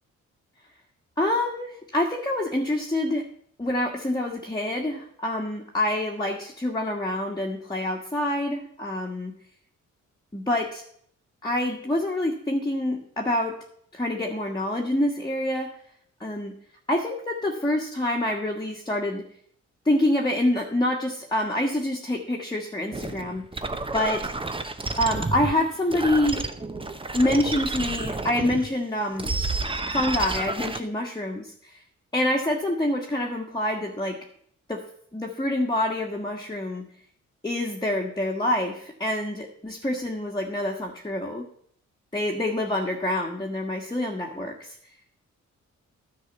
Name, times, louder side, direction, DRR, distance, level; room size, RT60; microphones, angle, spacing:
voice 1, 1.2-3.3 3.6-9.3 10.3-10.8 11.4-13.5 13.9-15.7 16.2-16.5 16.9-19.2 19.8-24.3 25.0-26.5 27.1-29.3 29.9-31.8 32.1-34.2 34.7-34.8 35.1-36.8 37.4-41.5 42.1-44.8, left 1 dB, 15° left, -1 dB, 1.4 m, -26 dB
sound 1, 22.9-28.7 29.1-30.8, right 3 dB, 15° right, 0.8 m, -30 dB
10.0 x 4.8 x 8.0 m, 0.65 s
cardioid pair, 65°, 30 cm